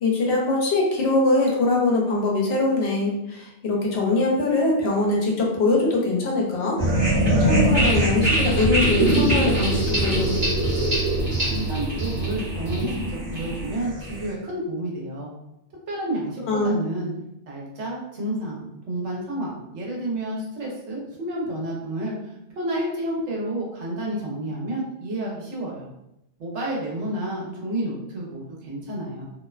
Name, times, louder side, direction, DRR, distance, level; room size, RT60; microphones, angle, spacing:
voice 1, 0.0-6.8 7.4-10.5 16.5-16.8, left 2 dB, 70° left, -1 dB, 0.8 m, -22 dB
sound 1, 6.8-14.3, right 1 dB, 50° right, 0.9 m, -22 dB
voice 2, 11.5-15.3 15.9-17.1 17.5-25.9 26.4-29.2, right 1 dB, 85° right, -3 dB, 1.0 m, -30 dB
2.5 x 2.1 x 2.3 m, 0.83 s
omnidirectional pair, 1.2 m